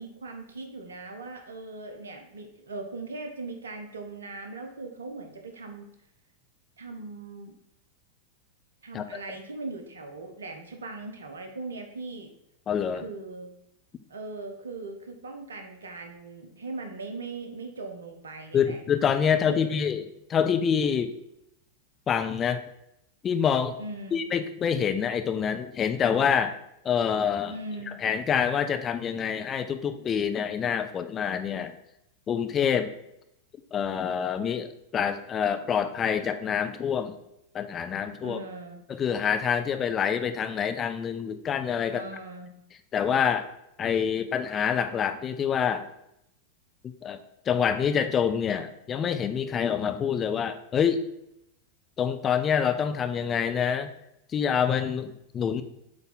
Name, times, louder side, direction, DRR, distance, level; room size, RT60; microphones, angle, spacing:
voice 1, 0.0-5.9 6.8-7.5 8.8-12.3 12.9-13.5 14.1-18.8 19.3-19.8 23.8-24.2 27.5-28.0 38.2-38.9 41.9-42.5, right 3 dB, 70° right, 5 dB, 0.9 m, -39 dB
voice 2, 12.7-13.0 18.5-21.2 22.1-22.6 23.2-23.7 24.1-26.5 26.8-27.6 27.9-31.7 32.3-33.0 33.7-37.2 37.5-38.4 38.9-42.1 42.9-43.4 43.8-45.9 47.0-47.2 47.5-51.0 52.0-53.9 54.3-55.6, left 7 dB, 25° left, 9 dB, 0.5 m, -26 dB
7.9 x 3.5 x 4.0 m, 0.79 s
figure-of-eight pair, 90°, 0 cm